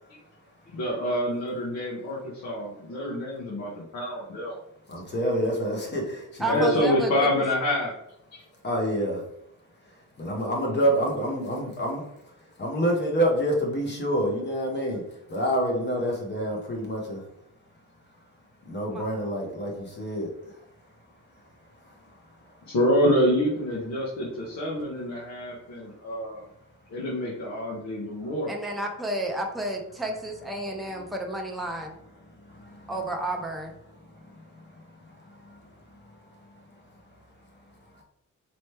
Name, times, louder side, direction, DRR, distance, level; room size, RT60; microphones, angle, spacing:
voice 1, 0.7-4.6 6.5-7.9 8.3-8.4 22.7-26.5 26.9-28.5, equal, 60° left, -5 dB, 1.1 m, -27 dB
voice 2, 4.9-6.0 6.5-6.8 8.6-9.2 10.2-12.0 12.6-15.0 15.3-17.2 18.7-19.7 20.0-20.3, equal, 35° left, 0 dB, 1.0 m, -26 dB
voice 3, 6.4-7.3 18.9-19.0 28.5-32.0 32.9-33.7, right 1 dB, ahead, 0 dB, 0.5 m, -31 dB
4.3 x 3.0 x 3.3 m, 0.79 s
wide cardioid pair, 180°, 31 cm